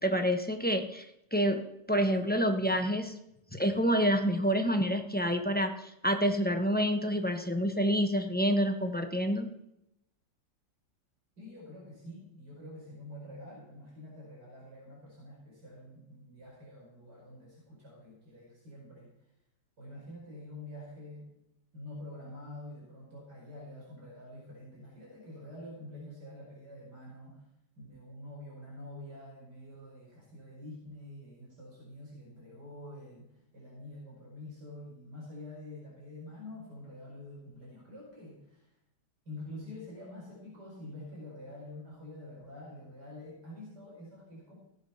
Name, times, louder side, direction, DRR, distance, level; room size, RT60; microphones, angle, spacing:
voice 1, 0.0-1.0 1.3-1.6 1.9-3.1 3.5-9.5, equal, 10° left, 6 dB, 0.8 m, -28 dB
voice 2, 11.4-19.1 19.8-21.3 21.7-27.4 27.8-33.3 33.5-38.7 39.2-44.6, left 1 dB, 80° right, -5 dB, 5.2 m, -47 dB
16.5 x 8.1 x 5.7 m, 0.83 s
omnidirectional pair, 1.8 m